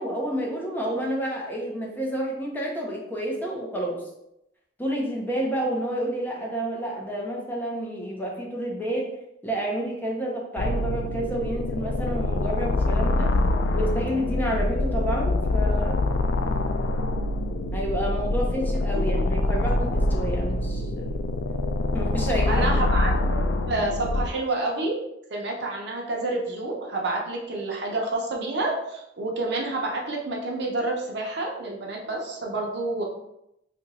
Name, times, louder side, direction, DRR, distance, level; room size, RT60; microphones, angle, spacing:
voice 1, 0.0-4.0 4.8-9.1 9.4-13.3 13.7-16.0 17.7-21.2 21.9-22.7, right 1 dB, 10° left, -2 dB, 0.6 m, -29 dB
sound 1, 10.6-24.3, left 2 dB, 75° left, 0.3 m, -25 dB
voice 2, 22.5-23.4 23.7-25.0 25.3-33.0, right 2 dB, 65° right, 0 dB, 0.7 m, -28 dB
2.9 x 2.5 x 4.0 m, 0.82 s
head